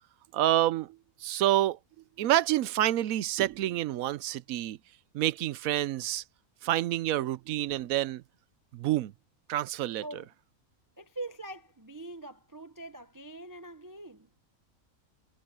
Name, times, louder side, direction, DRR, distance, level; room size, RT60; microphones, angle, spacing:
voice 1, 0.3-1.8 2.2-4.8 5.1-6.2 6.6-8.2 8.7-9.1 9.5-10.0, right 13 dB, 75° right, 1.0 m, -28 dB
voice 2, 10.0-10.3 11.0-14.3, right 2 dB, 20° right, 0.6 m, -43 dB
omnidirectional pair, 1.5 m